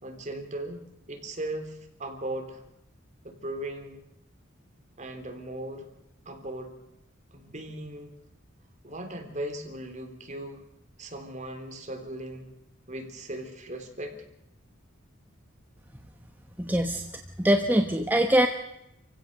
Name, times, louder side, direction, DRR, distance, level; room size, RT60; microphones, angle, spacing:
voice 1, 0.0-2.6 3.2-4.0 5.0-5.9 6.2-6.7 7.3-8.1 8.8-10.6 11.0-12.5 12.9-14.2, right 1 dB, 35° right, 4 dB, 3.4 m, -38 dB
voice 2, 16.7-17.0 17.4-18.5, right 1 dB, 10° right, 3 dB, 1.2 m, -22 dB
28.0 x 16.0 x 6.7 m, 0.86 s
head